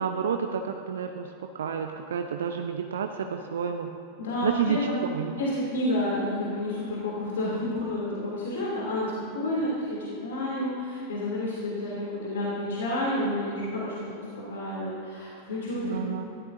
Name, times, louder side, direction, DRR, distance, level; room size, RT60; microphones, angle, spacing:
voice 1, 0.0-3.9 4.4-5.4 15.8-16.3, right 7 dB, 65° right, 5 dB, 0.7 m, -30 dB
voice 2, 4.2-5.0 5.4-15.9 16.2-16.3, left 1 dB, 60° left, -6 dB, 3.1 m, -30 dB
21.0 x 14.5 x 2.8 m, 2.5 s
figure-of-eight pair, 90°, 0 cm